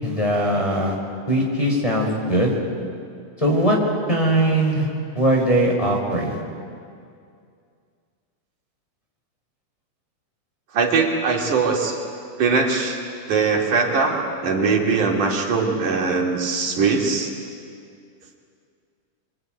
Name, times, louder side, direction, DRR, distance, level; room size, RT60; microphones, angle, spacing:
voice 1, 0.0-0.9 1.3-2.5 3.4-3.8 4.1-4.9 5.1-6.4, right 1 dB, 10° left, -2 dB, 4.9 m, -20 dB
voice 2, 5.3-5.7 10.7-12.0 12.4-13.0 13.3-17.3, right 4 dB, 85° right, -1 dB, 4.4 m, -21 dB
26.0 x 24.5 x 9.2 m, 2.3 s
omnidirectional pair, 3.5 m